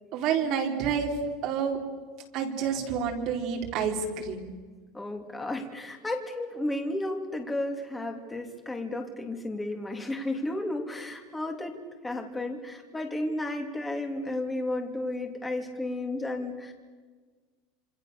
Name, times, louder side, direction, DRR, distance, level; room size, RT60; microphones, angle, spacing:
voice 1, 0.1-1.1 1.4-1.8 2.3-4.5, right 7 dB, 40° right, 2 dB, 3.9 m, -28 dB
voice 2, 4.9-11.8 12.0-16.7, left 1 dB, 10° left, 3 dB, 2.8 m, -33 dB
27.0 x 26.0 x 6.8 m, 1.4 s
supercardioid pair, 170°, 0 cm